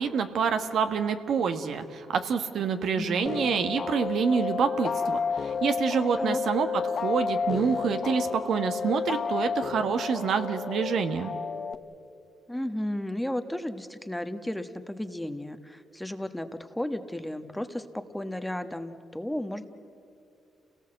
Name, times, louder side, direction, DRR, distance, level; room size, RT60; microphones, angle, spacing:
voice 1, 0.0-11.3, right 6 dB, 70° right, 7 dB, 1.4 m, -27 dB
voice 2, 3.0-3.3 6.2-6.4 12.5-19.7, left 1 dB, 5° left, 9 dB, 1.2 m, -34 dB
sound 1, 3.3-11.8, left 5 dB, 50° left, 0.8 m, -31 dB
28.5 x 18.0 x 7.8 m, 2.7 s
cardioid pair, 75°, 0 cm